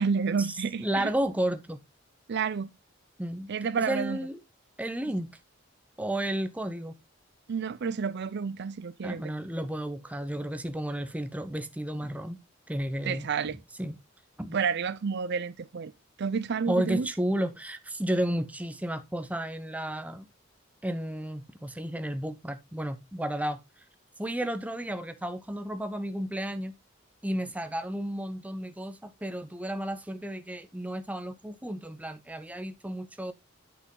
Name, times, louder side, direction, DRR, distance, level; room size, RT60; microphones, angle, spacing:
voice 1, 0.0-1.1 2.3-2.7 3.5-4.2 7.5-9.2 13.1-13.6 14.5-15.9 16.2-17.1, right 5 dB, 60° right, 0.5 m, -30 dB
voice 2, 0.8-1.8 3.2-3.5 3.9-4.4 4.8-5.3 6.0-7.0 9.0-12.4 12.7-13.3 13.8-14.0 14.4-14.6 16.7-20.3 20.8-23.6 24.2-26.7 27.2-33.3, right 1 dB, 5° right, 0.8 m, -32 dB
8.3 x 6.1 x 3.8 m
head